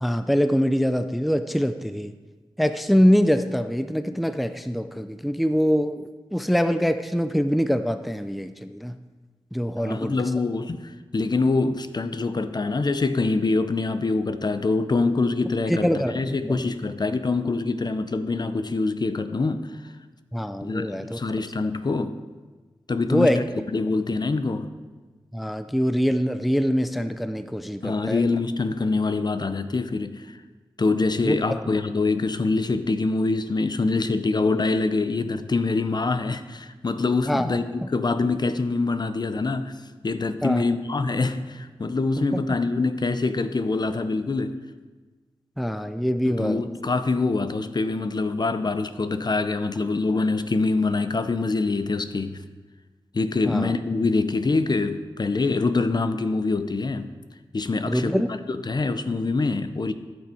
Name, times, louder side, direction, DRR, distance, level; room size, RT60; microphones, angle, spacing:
voice 1, 0.0-2.1 2.6-9.0 9.5-10.3 15.7-16.6 20.3-21.2 23.1-23.4 25.3-28.3 31.2-31.7 37.3-37.9 40.4-40.6 42.3-42.4 45.6-46.6 53.4-53.7 57.9-58.3, equal, ahead, 0.4 m, -24 dB
voice 2, 9.8-19.7 20.6-22.2 22.9-23.4 23.7-24.7 27.8-30.4 30.8-39.8 40.0-44.6 46.2-52.4 53.1-57.1 57.5-59.9, left 3 dB, 45° left, 0.6 m, -25 dB
13.5 x 6.2 x 4.4 m
cardioid pair, 60°, 10 cm